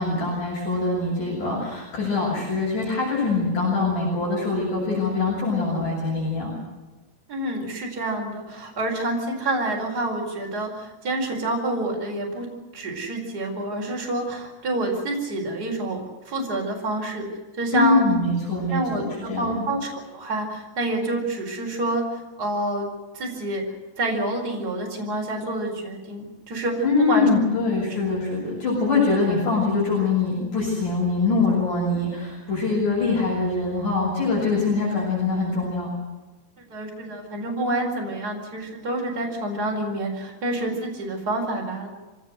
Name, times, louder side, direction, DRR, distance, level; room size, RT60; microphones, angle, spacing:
voice 1, 0.0-6.5 17.7-19.7 26.8-35.9, left 3 dB, 60° left, -4 dB, 8.5 m, -23 dB
voice 2, 7.3-16.0 16.2-17.3 17.5-18.0 18.7-22.9 23.1-23.6 24.0-27.3 36.6-41.9, right 2 dB, 25° right, 0 dB, 5.1 m, -28 dB
25.0 x 18.5 x 8.0 m, 1.2 s
omnidirectional pair, 4.3 m